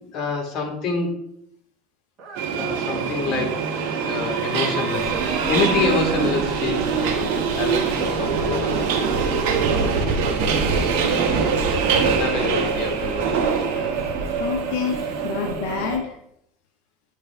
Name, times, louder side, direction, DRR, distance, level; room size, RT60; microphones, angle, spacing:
voice 1, 0.1-1.1 2.5-8.9 9.6-10.2 11.7-14.0 14.5-14.6, left 3 dB, 45° left, 3 dB, 1.5 m, -28 dB
sound 1, 2.2-3.2 4.9-5.6 6.6-7.3 9.4-9.5 10.3-10.4 11.4-11.5, right 3 dB, 40° right, 1.5 m, -38 dB
Subway metro underground, 2.4-16.0, right 5 dB, 75° right, 0.9 m, -23 dB
sound 2, 5.0-13.5, right 2 dB, 20° right, 2.3 m, -37 dB
voice 2, 11.0-11.7 12.4-12.6 14.4-16.2, left 6 dB, 75° left, 3 dB, 0.6 m, -29 dB
8.9 x 3.3 x 3.3 m, 0.74 s
supercardioid pair, 130°, 0 cm